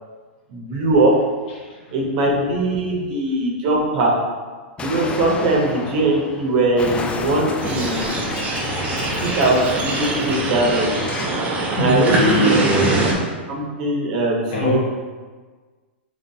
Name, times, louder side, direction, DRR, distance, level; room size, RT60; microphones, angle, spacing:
voice 1, 0.5-1.1 1.9-4.1 4.8-8.2 9.2-10.9 11.8-12.5 13.5-14.8, right 2 dB, 55° right, -1 dB, 0.9 m, -20 dB
Explosion, 4.8-11.4, left 4 dB, 15° left, 0.4 m, -31 dB
sound 1, 7.6-13.1, right 2 dB, 25° right, 0.7 m, -23 dB
voice 2, 11.7-13.1 14.5-14.8, left 1 dB, 60° left, -4 dB, 1.3 m, -20 dB
3.9 x 3.2 x 2.7 m, 1.4 s
hypercardioid pair, 120°, 6 cm